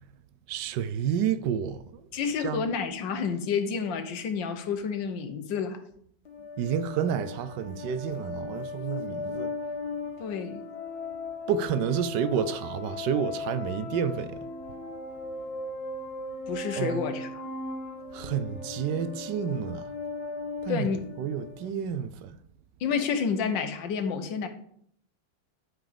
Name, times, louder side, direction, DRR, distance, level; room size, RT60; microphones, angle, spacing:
voice 1, 0.5-1.8 2.4-2.7 6.6-9.5 11.5-14.4 16.8-17.0 18.1-19.8 20.6-20.9 21.2-22.4, right 8 dB, 75° right, 1.2 m, -30 dB
voice 2, 2.1-5.8 10.2-10.6 16.5-17.4 20.7-21.0 22.8-24.5, left 6 dB, 75° left, 1.6 m, -29 dB
sound 1, 6.2-21.7, left 3 dB, 55° left, 1.7 m, -37 dB
11.5 x 4.8 x 5.1 m
omnidirectional pair, 2.1 m